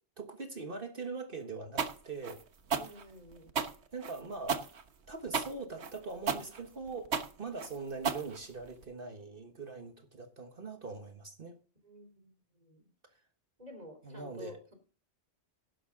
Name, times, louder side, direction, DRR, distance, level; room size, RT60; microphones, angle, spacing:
voice 1, 0.2-2.4 3.9-4.7 5.1-11.6 14.0-14.7, right 4 dB, 50° right, 1.5 m, -42 dB
sound 1, 1.8-8.8, right 5 dB, 70° right, 1.4 m, -34 dB
voice 2, 2.7-3.6 11.8-12.9 13.6-14.7, left 1 dB, 35° right, 3.3 m, -51 dB
11.5 x 11.0 x 3.8 m
omnidirectional pair, 1.2 m